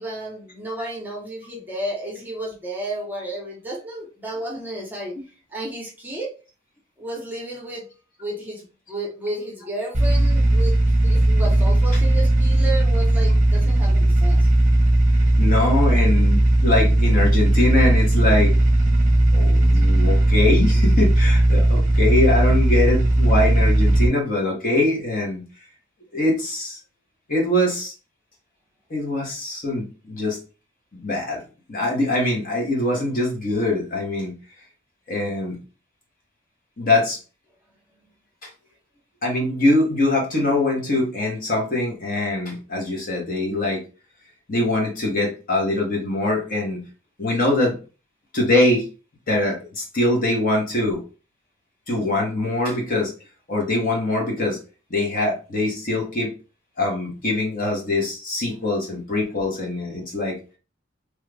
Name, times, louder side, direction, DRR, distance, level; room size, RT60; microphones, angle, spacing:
voice 1, 0.0-5.1 5.5-6.3 7.0-7.8 8.2-10.7 11.0-14.5, right 1 dB, 10° right, -3 dB, 0.8 m, -32 dB
sound 1, 9.9-24.1, right 1 dB, 40° right, 0.7 m, -17 dB
voice 2, 15.4-18.5 19.3-25.4 26.1-26.8 27.3-27.9 28.9-30.4 30.9-31.4 31.7-34.3 35.1-35.6 36.8-37.2 39.2-43.8 44.5-46.8 47.2-47.8 48.3-48.9 49.3-51.0 51.9-53.1 53.5-54.6 54.9-56.3 56.8-60.4, left 2 dB, 45° left, 0 dB, 1.0 m, -23 dB
3.1 x 2.3 x 3.3 m, 0.34 s
head